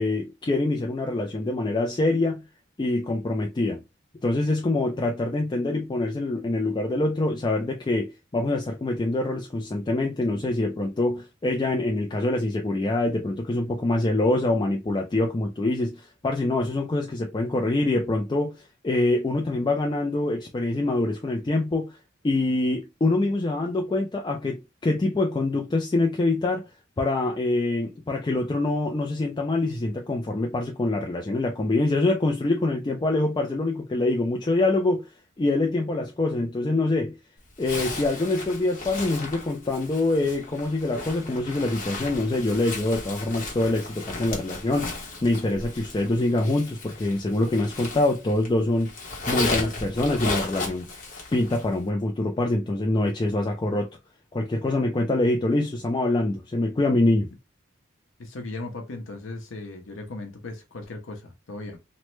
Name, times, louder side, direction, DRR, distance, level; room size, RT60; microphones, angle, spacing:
voice 1, 0.0-2.4 2.8-3.8 4.2-22.0 22.2-35.1 35.4-37.2 37.6-48.9 49.3-50.9 51.3-53.9 54.3-57.3, left 2 dB, 20° left, 0.3 m, -25 dB
Zipper (clothing), 37.6-48.5 48.8-51.7, left 3 dB, 40° left, 0.8 m, -35 dB
voice 2, 58.2-61.8, left 2 dB, 80° left, 0.7 m, -37 dB
3.0 x 2.1 x 3.0 m
head